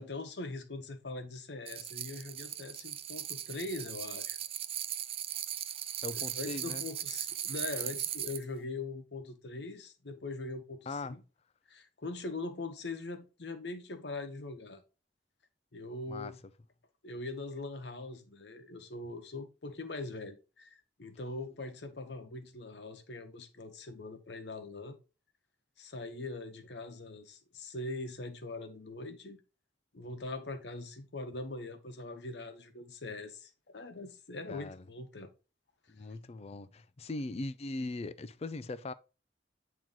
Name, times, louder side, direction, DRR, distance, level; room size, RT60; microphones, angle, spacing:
voice 1, 0.0-4.4 6.1-11.2 11.7-14.8 15.7-16.4 17.0-25.0 25.8-29.4 29.9-35.3 36.0-36.1, left 2 dB, 70° left, 1.0 m, -42 dB
sound 1, 1.7-8.4, right 11 dB, 35° right, 0.3 m, -38 dB
voice 2, 6.0-6.8 10.9-11.2 16.1-16.3 34.5-34.8 35.9-38.9, left 2 dB, 35° left, 0.4 m, -40 dB
8.7 x 3.1 x 3.8 m
head